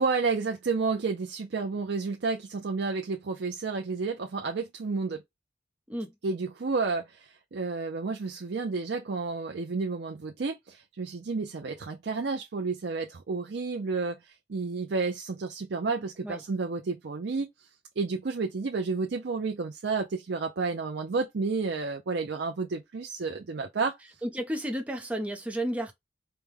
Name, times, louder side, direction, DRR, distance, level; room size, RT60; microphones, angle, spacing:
voice 1, 0.0-5.2 6.2-17.5 18.0-24.0, right 4 dB, 80° right, 0.5 m, -31 dB
voice 2, 24.2-25.9, right 1 dB, 10° right, 0.7 m, -32 dB
4.6 x 2.2 x 3.4 m
head